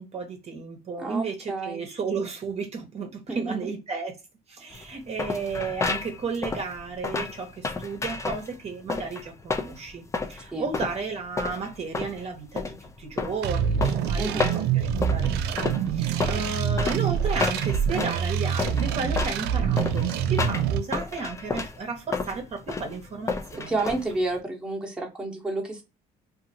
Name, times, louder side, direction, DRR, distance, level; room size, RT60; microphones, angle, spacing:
voice 1, 0.0-4.2 4.5-10.0 10.3-23.8, right 4 dB, 40° right, 0.7 m, -33 dB
voice 2, 1.0-1.8 3.3-3.6 10.5-10.7 14.2-14.6 23.7-25.8, right 2 dB, 5° right, 0.9 m, -30 dB
sound 1, 4.7-24.4, left 4 dB, 15° left, 0.4 m, -31 dB
sound 2, 13.4-20.8, right 8 dB, 75° right, 0.4 m, -26 dB
2.7 x 2.5 x 2.6 m
cardioid pair, 110°, 17 cm